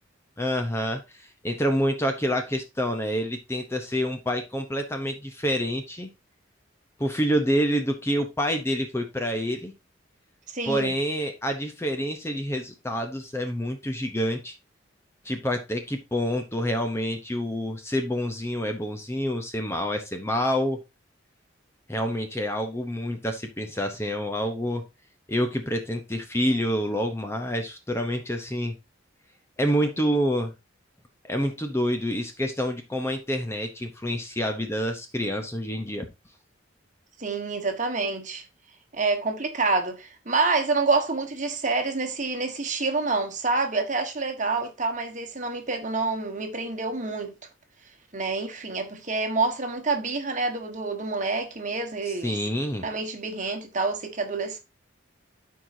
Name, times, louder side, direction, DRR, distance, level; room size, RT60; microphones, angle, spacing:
voice 1, 0.4-6.1 7.0-9.7 10.7-14.5 15.2-20.8 21.9-24.8 25.3-28.7 29.6-30.5 31.2-36.1 52.1-52.8, equal, 15° left, 0.8 m, -27 dB
voice 2, 10.5-10.9 37.2-38.4 38.9-47.3 48.1-52.3 52.8-54.6, right 3 dB, 40° right, 1.4 m, -27 dB
13.0 x 4.8 x 2.7 m
head